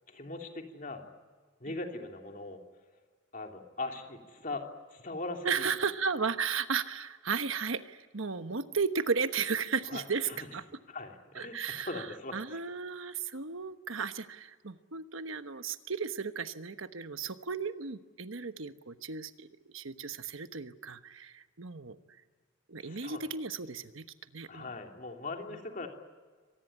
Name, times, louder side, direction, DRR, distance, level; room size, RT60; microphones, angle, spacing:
voice 1, 0.1-1.0 1.6-2.6 3.3-5.7 9.9-10.5 10.9-12.6 22.8-23.2 24.5-25.9, left 2 dB, 40° left, 2 dB, 3.0 m, -40 dB
voice 2, 5.4-10.6 11.3-12.1 12.3-19.5 19.7-22.0 22.7-24.1 24.3-24.7, right 5 dB, 80° right, 10 dB, 1.2 m, -34 dB
25.0 x 19.0 x 10.0 m, 1.5 s
head